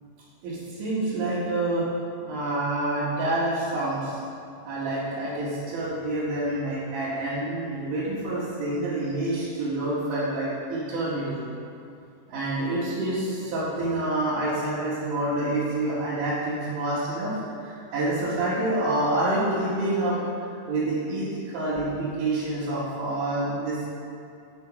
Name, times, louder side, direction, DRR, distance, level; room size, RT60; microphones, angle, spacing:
voice 1, 0.4-1.9 2.3-4.2 4.6-11.4 12.3-23.9, right 1 dB, 70° right, -11 dB, 4.2 m, -27 dB
12.5 x 8.0 x 4.2 m, 2.5 s
omnidirectional pair, 5.8 m